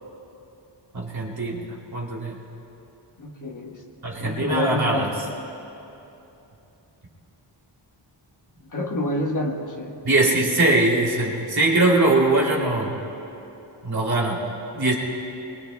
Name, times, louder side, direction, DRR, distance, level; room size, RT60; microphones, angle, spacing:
voice 1, 0.9-1.7 1.9-2.3 4.0-5.1 10.0-13.0 13.8-14.4 14.7-14.9, right 2 dB, 50° right, -3 dB, 3.0 m, -21 dB
voice 2, 3.2-5.2 8.6-9.9, left 1 dB, 40° left, 0 dB, 1.2 m, -28 dB
26.5 x 23.0 x 2.3 m, 2.9 s
wide cardioid pair, 165°, 46 cm